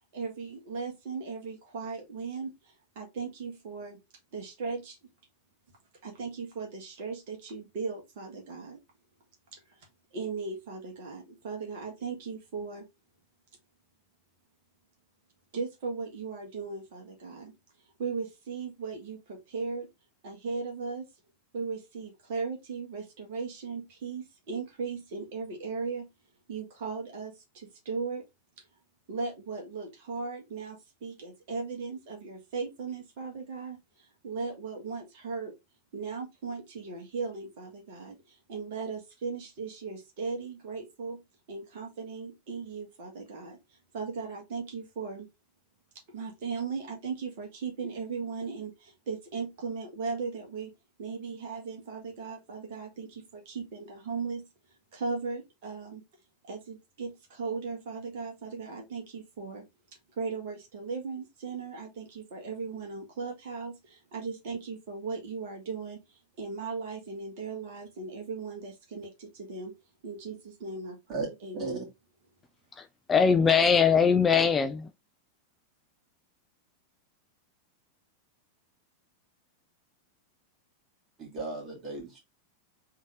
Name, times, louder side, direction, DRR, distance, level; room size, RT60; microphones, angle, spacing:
voice 1, 0.1-4.0 4.3-5.0 6.0-8.8 9.5-9.6 10.1-12.8 15.5-17.5 18.0-19.9 20.2-21.1 21.5-26.1 26.5-28.2 29.1-35.5 35.9-41.2 41.5-43.6 43.9-45.3 46.1-50.7 51.0-54.5 54.9-56.0 56.5-59.6 60.2-69.7 70.0-71.9, right 4 dB, 50° right, 1.8 m, -37 dB
voice 2, 71.5-71.8 81.2-82.2, right 4 dB, 25° right, 2.4 m, -35 dB
voice 3, 72.8-74.9, left 6 dB, 20° left, 0.4 m, -22 dB
3.7 x 3.7 x 3.5 m
figure-of-eight pair, 90°, 0 cm